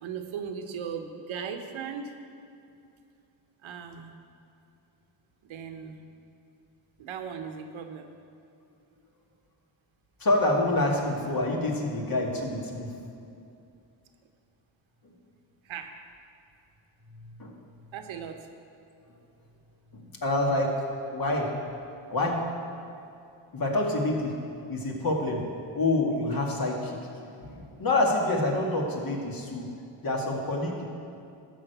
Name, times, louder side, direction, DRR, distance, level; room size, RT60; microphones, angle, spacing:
voice 1, 0.0-2.2 3.6-4.1 5.4-6.0 7.0-8.1 15.6-15.9 17.9-18.5, right 7 dB, 85° right, 6 dB, 1.0 m, -37 dB
voice 2, 10.2-12.9 17.4-17.5 19.9-20.8 21.1-21.5 22.1-22.4 23.5-24.4 24.7-25.4 25.7-27.0 27.4-29.7 30.0-30.8, left 2 dB, 50° left, 0 dB, 2.0 m, -27 dB
12.5 x 5.1 x 8.1 m, 2.6 s
cardioid pair, 90°, 46 cm